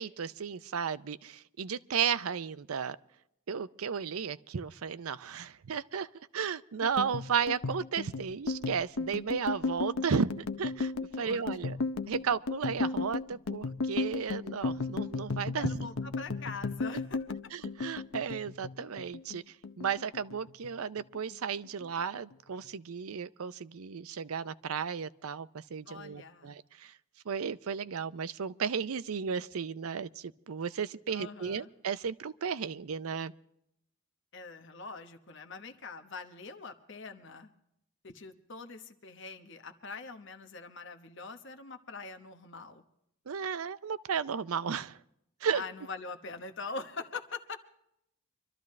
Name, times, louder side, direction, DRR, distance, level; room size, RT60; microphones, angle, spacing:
voice 1, 0.0-3.0 3.5-6.1 6.3-11.8 12.1-15.9 17.5-26.9 27.3-33.3 43.3-45.0 45.4-45.6, right 6 dB, 85° right, 0.5 m, -34 dB
sound 1, 6.8-19.4 19.6-20.7 21.0-21.3 21.6-22.3, left 3 dB, 80° left, 0.7 m, -35 dB
voice 2, 11.1-11.9 15.5-17.3 25.9-26.6 31.1-31.7 34.3-37.5 38.0-42.8 45.5-47.6, left 4 dB, 55° left, 1.1 m, -43 dB
25.0 x 13.0 x 3.2 m
head